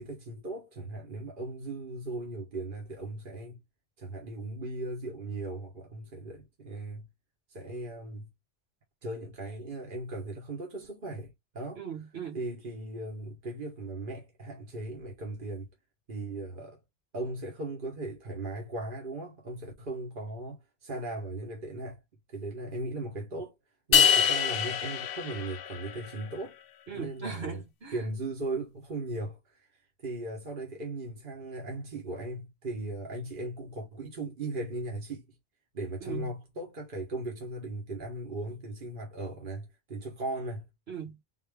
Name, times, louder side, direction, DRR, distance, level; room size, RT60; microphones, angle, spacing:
voice 1, 0.0-3.6 4.0-7.1 7.5-8.3 9.0-11.8 12.3-15.7 16.1-16.8 17.1-22.0 22.3-23.5 23.9-26.6 26.9-27.6 27.9-29.7 30.0-35.2 35.7-40.7, right 2 dB, 55° right, 1.5 m, -38 dB
voice 2, 11.8-12.4 26.9-28.0 36.0-36.3 40.9-41.2, right 7 dB, 80° right, 2.3 m, -39 dB
sound 1, 23.9-26.2, left 8 dB, 70° left, 0.7 m, -25 dB
3.9 x 2.8 x 3.5 m
omnidirectional pair, 1.0 m